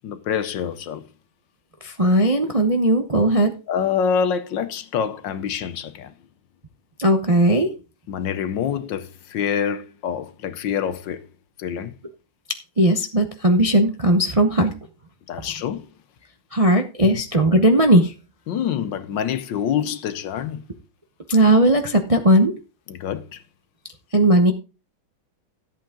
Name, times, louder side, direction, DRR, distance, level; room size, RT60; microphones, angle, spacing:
voice 1, 0.0-1.0 3.7-6.1 8.1-11.2 11.6-11.9 15.3-15.9 17.0-17.2 18.5-20.7 22.9-23.4, left 8 dB, 70° left, 1.3 m, -26 dB
voice 2, 1.8-3.5 7.0-7.7 12.8-14.7 16.5-18.1 21.3-22.5 24.1-24.5, right 1 dB, 30° right, 0.6 m, -17 dB
14.0 x 8.4 x 3.7 m
omnidirectional pair, 2.3 m